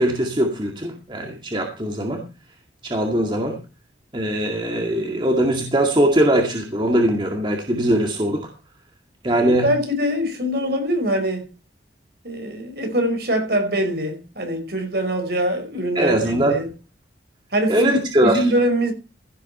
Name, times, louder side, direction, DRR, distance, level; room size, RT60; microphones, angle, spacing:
voice 1, 0.0-2.2 2.8-3.6 4.1-8.5 9.2-9.7 16.0-16.6 17.7-18.4, right 1 dB, 25° right, 2.1 m, -21 dB
voice 2, 9.4-11.5 12.2-16.7 17.5-18.9, equal, 60° right, 5.3 m, -23 dB
16.0 x 8.7 x 4.4 m
head